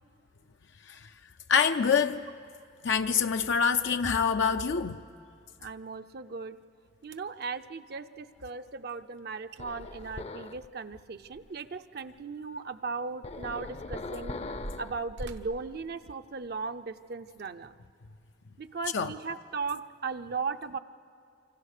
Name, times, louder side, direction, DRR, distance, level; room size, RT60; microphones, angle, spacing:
voice 1, 1.5-2.3 2.8-5.0 18.9-19.1, left 6 dB, 80° left, 0.5 m, -25 dB
voice 2, 5.6-6.6 7.0-14.4 14.8-17.7 18.6-20.8, right 4 dB, 60° right, 0.6 m, -37 dB
sound 1, 6.6-6.7 7.0-7.5 9.2-9.3 9.5-9.6 10.0-11.8 12.1-12.2 12.9-16.7 17.3-17.5 18.1-18.2, right 1 dB, 80° right, 1.1 m, -46 dB
sound 2, 9.6-10.7 13.2-15.0, left 3 dB, 35° left, 0.6 m, -40 dB
27.5 x 25.5 x 6.6 m
head